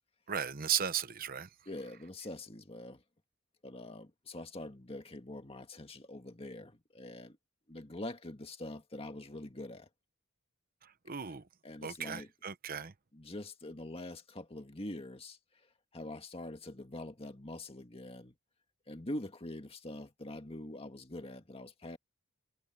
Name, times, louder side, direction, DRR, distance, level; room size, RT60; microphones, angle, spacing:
voice 1, 0.3-1.5 11.1-11.4 11.8-12.9, right 8 dB, 40° right, 0.9 m, -35 dB
voice 2, 1.7-3.0 3.6-7.4 7.7-9.9 11.2-11.3 11.6-12.3 13.1-15.7 15.9-18.4 18.9-22.0, left 1 dB, 25° left, 1.9 m, -44 dB
head